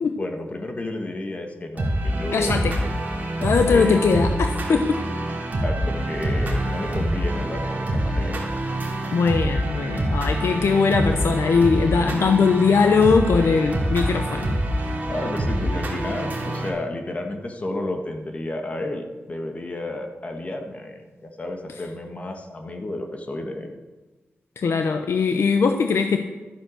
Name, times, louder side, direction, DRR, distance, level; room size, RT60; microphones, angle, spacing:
voice 1, 0.2-2.6 3.7-4.0 5.6-8.4 15.1-23.7, left 1 dB, 30° left, 4 dB, 1.5 m, -31 dB
sound 1, 1.8-16.7, right 1 dB, 35° right, 2.9 m, -26 dB
voice 2, 2.3-2.7 3.4-5.0 9.1-14.5 24.6-26.2, left 5 dB, 75° left, 6 dB, 0.8 m, -20 dB
13.0 x 9.2 x 6.5 m, 1.2 s
wide cardioid pair, 155°, 4 cm